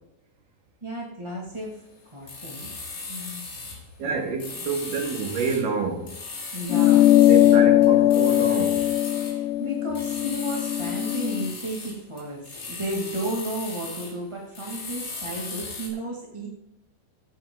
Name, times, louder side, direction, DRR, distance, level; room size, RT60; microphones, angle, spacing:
voice 1, 0.8-1.8 2.1-4.2 4.6-4.7 6.5-8.1 9.2-16.5, right 1 dB, 20° right, 0.9 m, -34 dB
sound 1, 2.3-3.9 4.4-5.7 6.1-9.4 10.0-14.2 14.6-15.9, left 3 dB, 45° left, 3.6 m, -37 dB
voice 2, 4.0-6.1 7.3-8.8, right 5 dB, 60° right, 3.3 m, -28 dB
sound 2, 6.7-11.5, left 13 dB, 85° left, 2.0 m, -19 dB
17.0 x 8.6 x 3.8 m
omnidirectional pair, 4.5 m